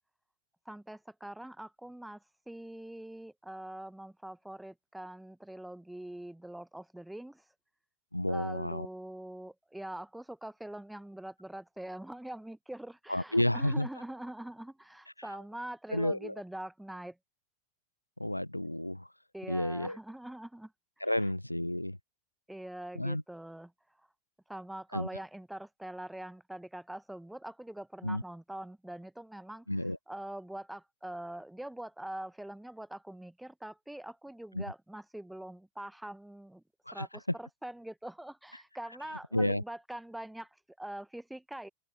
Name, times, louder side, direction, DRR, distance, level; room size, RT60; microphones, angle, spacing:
voice 1, 0.6-7.5 8.3-17.2 19.3-20.7 22.5-24.1 24.5-36.6 36.9-41.7, right 1 dB, 5° right, 1.3 m, -44 dB
voice 2, 8.1-8.9 13.1-13.9 15.9-16.3 18.2-19.1 19.5-20.0 21.0-22.0 23.0-23.2 24.9-25.1 28.0-28.2 29.7-30.0 34.5-34.6 36.9-37.1 38.5-38.6 39.3-39.6, left 1 dB, 85° left, 1.0 m, -31 dB
open air
figure-of-eight pair, 90°, 0 cm